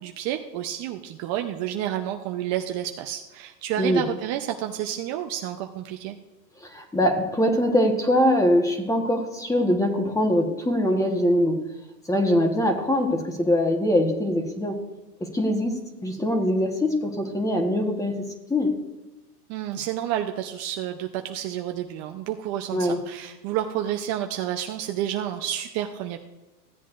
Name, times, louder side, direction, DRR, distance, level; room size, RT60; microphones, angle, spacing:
voice 1, 0.0-6.1 19.5-26.2, right 11 dB, 35° right, 4 dB, 0.7 m, -30 dB
voice 2, 6.6-11.6 12.0-14.8 15.2-18.1 18.5-18.7 22.7-23.0, left 1 dB, 5° left, 4 dB, 1.2 m, -23 dB
15.5 x 8.2 x 2.5 m, 1.1 s
hypercardioid pair, 125°, 47 cm